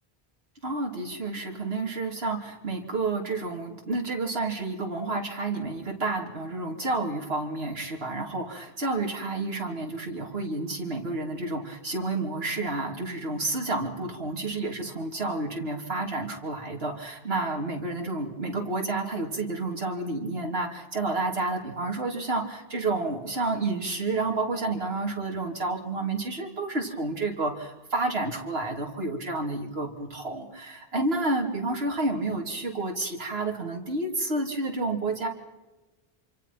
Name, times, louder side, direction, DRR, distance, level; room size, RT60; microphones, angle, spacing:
voice 1, 0.6-35.3, right 2 dB, 75° right, 1 dB, 3.1 m, -30 dB
27.0 x 26.0 x 5.9 m, 1.1 s
omnidirectional pair, 1.1 m